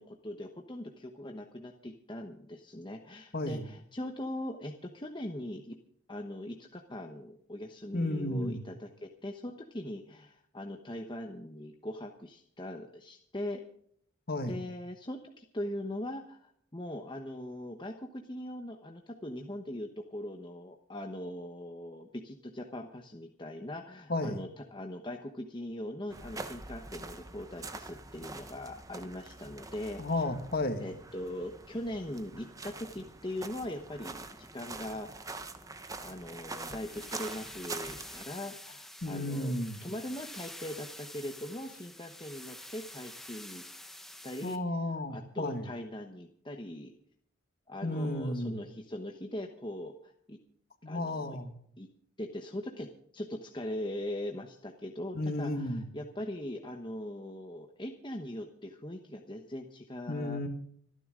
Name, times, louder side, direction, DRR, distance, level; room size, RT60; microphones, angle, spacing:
voice 1, 0.0-5.8 6.1-13.6 14.5-30.2 30.8-35.4 36.0-39.5 39.8-43.6 44.2-46.9 47.7-50.4 50.9-51.4 51.8-51.9 52.2-60.4, left 1 dB, 20° left, 3 dB, 1.0 m, -41 dB
voice 2, 3.3-3.6 7.9-8.6 14.3-14.6 24.1-24.4 30.0-30.9 39.0-39.8 44.4-45.7 47.8-48.6 50.8-51.5 55.1-55.8 60.1-60.5, left 1 dB, 45° left, 7 dB, 1.9 m, -33 dB
sound 1, 26.1-38.2, right 3 dB, 15° right, 1.0 m, -45 dB
sound 2, 36.6-44.6, left 1 dB, ahead, 1.2 m, -48 dB
26.0 x 11.0 x 3.8 m, 0.66 s
head